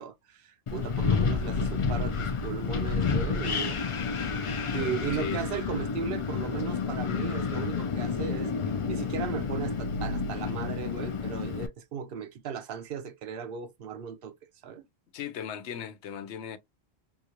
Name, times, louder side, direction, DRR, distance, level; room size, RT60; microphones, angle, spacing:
voice 1, 0.0-3.8 4.7-8.5 8.9-14.3 14.6-14.8, right 7 dB, 60° right, 0.8 m, -36 dB
Wind, 0.7-11.7, left 5 dB, 50° left, 0.3 m, -30 dB
voice 2, 15.1-16.6, left 7 dB, 80° left, 0.9 m, -37 dB
3.7 x 2.4 x 2.9 m
omnidirectional pair, 1.2 m